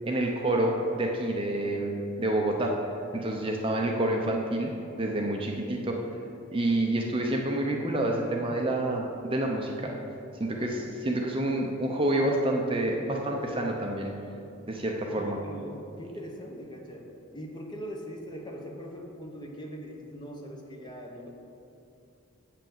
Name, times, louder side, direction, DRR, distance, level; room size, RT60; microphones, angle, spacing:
voice 1, 0.0-2.7 3.1-4.7 5.0-6.0 6.5-9.9 10.4-14.1 14.7-15.4, right 1 dB, 25° right, 1 dB, 0.7 m, -28 dB
voice 2, 15.1-17.1 17.3-21.3, equal, 20° left, 0 dB, 1.0 m, -41 dB
8.1 x 5.8 x 7.2 m, 2.7 s
head